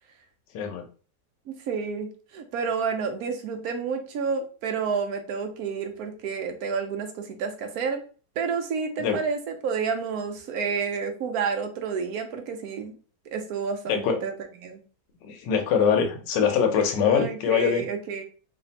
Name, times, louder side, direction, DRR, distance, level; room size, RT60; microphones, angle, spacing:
voice 1, 0.5-0.8 9.0-9.2 13.9-14.2 15.2-17.9, left 7 dB, 80° left, 4 dB, 1.3 m, -23 dB
voice 2, 1.5-8.0 8.4-12.9 13.3-14.3 14.6-14.8 17.0-18.2, right 5 dB, 65° right, 5 dB, 1.0 m, -30 dB
3.3 x 2.4 x 4.0 m, 0.38 s
omnidirectional pair, 1.9 m